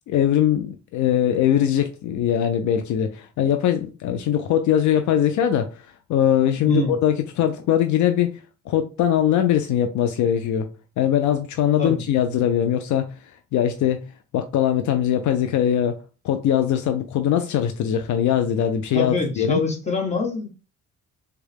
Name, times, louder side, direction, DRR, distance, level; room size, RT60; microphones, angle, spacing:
voice 1, 0.1-8.4 8.7-10.7 11.0-14.0 14.3-19.6, left 10 dB, 75° left, 0.5 m, -21 dB
voice 2, 6.6-6.9 11.8-12.0 18.9-20.5, left 2 dB, 20° left, 1.3 m, -24 dB
3.5 x 2.3 x 3.4 m
cardioid pair, 90°, 30 cm